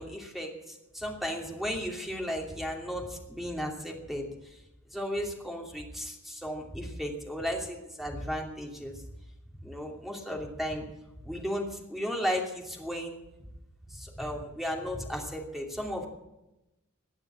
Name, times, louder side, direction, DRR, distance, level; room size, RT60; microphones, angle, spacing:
voice 1, 0.0-4.3 4.9-9.0 9.6-10.8 11.2-13.2 13.9-16.1, equal, ahead, 0 dB, 2.8 m, -35 dB
21.0 x 7.8 x 8.4 m, 0.93 s
head